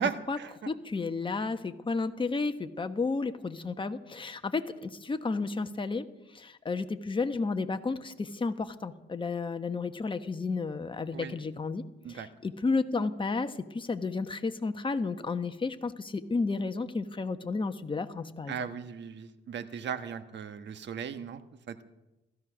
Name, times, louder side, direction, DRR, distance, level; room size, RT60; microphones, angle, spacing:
voice 1, 0.0-0.7 11.1-11.3 12.0-12.3 18.5-21.4 21.7-21.8, right 7 dB, 65° right, 10 dB, 1.3 m, -36 dB
voice 2, 0.7-6.1 6.3-11.8 12.1-18.7, left 4 dB, 25° left, 8 dB, 1.2 m, -32 dB
16.5 x 14.0 x 6.2 m, 0.98 s
cardioid pair, 90°, 20 cm